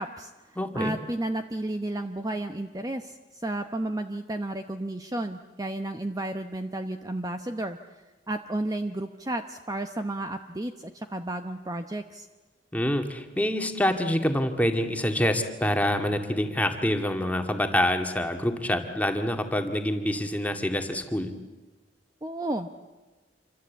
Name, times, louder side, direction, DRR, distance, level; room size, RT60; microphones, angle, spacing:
voice 1, 0.0-3.2 3.4-8.0 8.3-12.3 22.2-22.7, right 1 dB, 20° right, 7 dB, 0.9 m, -32 dB
voice 2, 0.6-0.9 12.7-21.3, left 1 dB, 10° left, 5 dB, 2.0 m, -26 dB
27.0 x 24.5 x 8.4 m, 1.2 s
head